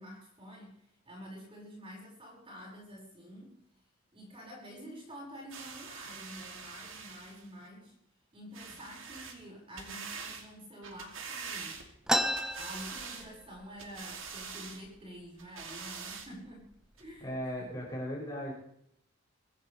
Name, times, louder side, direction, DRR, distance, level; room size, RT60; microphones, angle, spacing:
voice 1, 0.0-3.5 4.1-8.0 8.3-11.8 12.6-17.7, equal, 30° right, -2 dB, 5.7 m, -48 dB
sound 1, 5.5-7.5 8.5-9.4 9.8-10.4 10.8-12.0 12.4-13.3 13.8-14.8 15.4-16.3 17.0-17.1, right 5 dB, 80° right, 2.6 m, -44 dB
sound 2, 12.1-13.7 14.0-14.1 14.4-15.0 15.6-15.7 16.5-16.6 17.1-17.6, equal, 5° right, 1.0 m, -32 dB
voice 2, 17.2-18.5, equal, 20° left, -4 dB, 7.8 m, -37 dB
24.0 x 15.5 x 3.4 m, 0.71 s
head